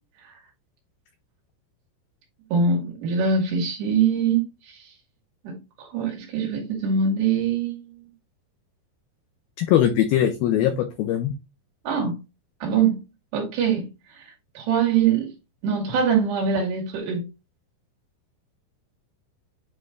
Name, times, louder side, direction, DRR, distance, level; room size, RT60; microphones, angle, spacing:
voice 1, 2.5-4.8 5.4-8.1 11.8-12.1 12.6-13.0 13.3-13.9 14.2-14.3 14.6-15.3 15.6-17.3, right 6 dB, 65° right, 4.5 m, -23 dB
voice 2, 9.6-11.3, left 11 dB, 85° left, 2.1 m, -21 dB
9.5 x 3.2 x 3.5 m
omnidirectional pair, 5.3 m